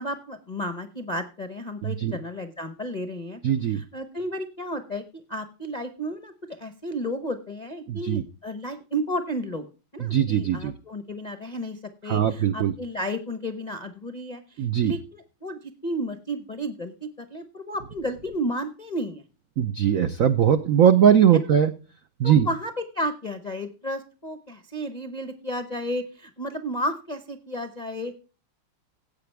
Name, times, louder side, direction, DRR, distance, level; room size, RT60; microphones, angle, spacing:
voice 1, 0.0-3.4 3.7-6.3 6.6-9.6 9.9-19.2 21.3-21.4 22.2-28.1, equal, 50° left, 9 dB, 0.5 m, -32 dB
voice 2, 1.8-2.2 3.4-3.8 7.9-8.2 10.0-10.7 12.1-12.7 14.6-14.9 19.6-21.7 22.2-22.5, right 9 dB, 80° right, 10 dB, 0.7 m, -20 dB
15.5 x 8.6 x 3.4 m, 0.33 s
omnidirectional pair, 2.3 m